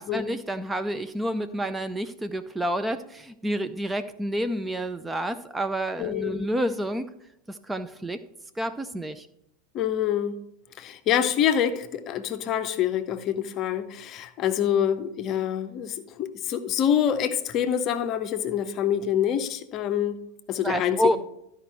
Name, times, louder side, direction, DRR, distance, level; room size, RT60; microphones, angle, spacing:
voice 1, 0.0-7.1 7.5-8.2 8.6-9.3 20.6-21.2, equal, 10° right, 9 dB, 0.4 m, -29 dB
voice 2, 6.0-6.5 9.7-10.4 10.8-20.2 20.5-21.2, left 9 dB, 40° left, 10 dB, 0.7 m, -26 dB
12.5 x 5.0 x 4.3 m, 0.81 s
figure-of-eight pair, 80°, 0 cm